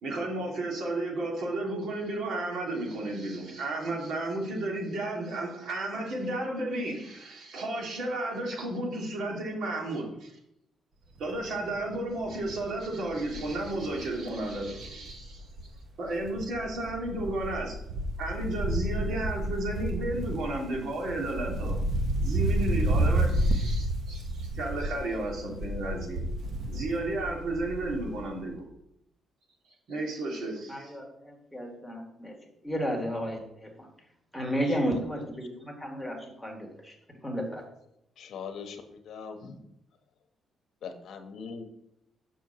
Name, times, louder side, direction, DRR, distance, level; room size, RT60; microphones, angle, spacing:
voice 1, 0.0-10.3 11.2-15.4 16.0-17.7 18.2-21.8 22.2-26.2 26.7-28.6 29.9-30.9, right 2 dB, 70° right, -1 dB, 2.3 m, -33 dB
Wind, 11.2-11.5 11.9-12.0 12.2-15.8 16.1-28.2 28.5-28.6, right 1 dB, 50° right, 0.9 m, -31 dB
voice 2, 30.7-32.4 32.6-33.9 34.3-37.0 37.2-37.6, equal, ahead, 0 dB, 1.6 m, -33 dB
voice 3, 38.2-39.5 40.8-41.6, left 6 dB, 65° left, 5 dB, 1.0 m, -41 dB
6.2 x 4.5 x 6.6 m, 0.78 s
cardioid pair, 150°, 0 cm